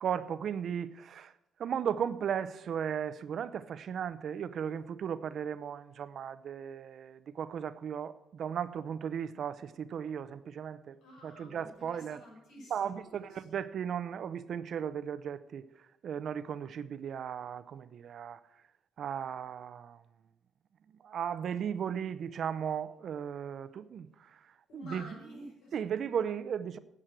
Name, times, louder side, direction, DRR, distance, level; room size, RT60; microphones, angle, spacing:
voice 1, 0.0-1.3 1.6-11.0 11.2-12.2 12.7-15.7 16.0-18.4 19.0-20.0 20.9-24.5 24.7-25.0 25.7-26.8, right 8 dB, 60° right, 0.7 m, -36 dB
voice 2, 11.0-13.5 24.7-25.7, equal, 85° left, 5.5 m, -50 dB
11.0 x 7.6 x 7.7 m
cardioid pair, 90°, 0 cm